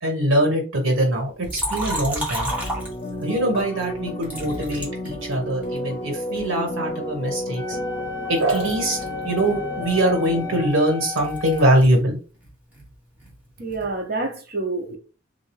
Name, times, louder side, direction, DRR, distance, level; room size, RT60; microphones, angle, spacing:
voice 1, 0.0-2.5 3.2-7.8 8.3-9.0 9.2-12.2, right 1 dB, 75° right, 1.5 m, -22 dB
Liquid, 1.4-3.4 4.2-5.8 6.3-8.1 8.3-12.0 12.3-13.9, equal, 10° right, 1.1 m, -33 dB
sound 1, 2.5-10.7, left 1 dB, 30° left, 0.9 m, -32 dB
Wind instrument woodwind instrument, 7.5-11.8, left 6 dB, 15° left, 1.4 m, -34 dB
voice 2, 13.6-15.0, right 3 dB, 50° right, 0.9 m, -28 dB
3.4 x 2.5 x 3.2 m
head